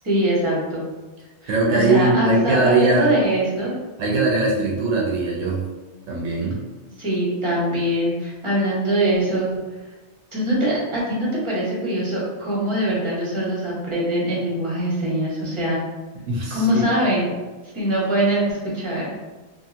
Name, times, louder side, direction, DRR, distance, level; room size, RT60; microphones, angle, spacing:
voice 1, 0.0-0.9 1.4-3.7 7.0-9.5 10.3-15.8 16.5-17.3 17.7-19.2, right 1 dB, 30° right, -6 dB, 0.8 m, -22 dB
voice 2, 1.5-3.1 4.0-5.6 6.1-6.6 16.3-16.8, right 3 dB, 70° right, -3 dB, 0.8 m, -20 dB
2.8 x 2.4 x 2.4 m, 1.2 s
omnidirectional pair, 1.3 m